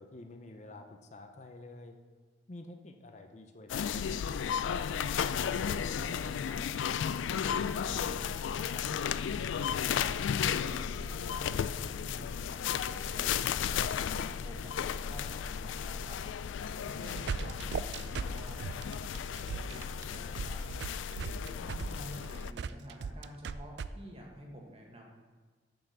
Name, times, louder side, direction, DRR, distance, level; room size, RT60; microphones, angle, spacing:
voice 1, 0.0-2.0 2.5-4.2, left 2 dB, 40° left, 5 dB, 0.6 m, -49 dB
sound 1, 3.7-22.5, left 8 dB, 85° left, 0.3 m, -34 dB
voice 2, 5.4-6.6 7.0-13.5 13.9-16.2 16.8-20.6 21.3-25.2, right 1 dB, 30° right, 0 dB, 1.5 m, -50 dB
sound 2, 16.9-23.9, right 5 dB, 60° right, 0.3 m, -38 dB
6.9 x 5.9 x 6.5 m, 1.4 s
head